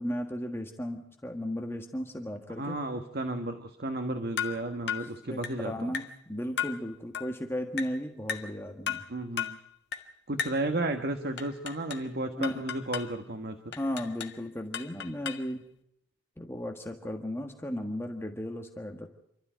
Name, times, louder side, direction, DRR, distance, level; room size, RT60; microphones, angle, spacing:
voice 1, 0.0-2.8 5.0-6.0 6.3-9.0 12.4-12.6 13.8-15.6 16.4-19.1, equal, 10° left, 3 dB, 1.6 m, -35 dB
voice 2, 2.6-5.9 9.1-9.6 10.3-13.7, right 2 dB, 50° right, 6 dB, 1.5 m, -33 dB
sound 1, 4.4-4.6 4.9-5.1 5.4-5.6 5.9-6.2 6.6-6.8 7.1-7.3 7.8-8.0 8.3-8.5 8.9-9.1 9.4-9.6 9.9-10.1 10.4-10.7 11.4-12.1 12.4-13.1 13.7-14.4 14.7-15.5, left 8 dB, 60° left, 1.6 m, -35 dB
28.5 x 13.0 x 9.1 m, 0.77 s
head